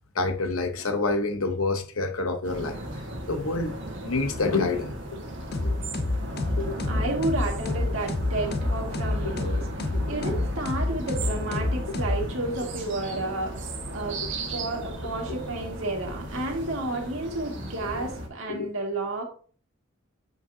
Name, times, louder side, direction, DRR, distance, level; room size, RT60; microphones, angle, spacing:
voice 1, 0.1-2.8 3.3-3.7 4.0-5.2 5.6-5.8 6.6-6.8 10.2-10.3 18.5-18.7, left 3 dB, 90° left, 0.9 m, -27 dB
sound 1, 2.4-18.3, right 1 dB, 60° right, 1.4 m, -36 dB
sound 2, 5.5-12.7, left 2 dB, 50° left, 0.5 m, -29 dB
voice 2, 6.9-13.6 13.9-14.2 14.5-19.2, right 2 dB, 80° right, 1.9 m, -31 dB
7.8 x 5.1 x 2.7 m
head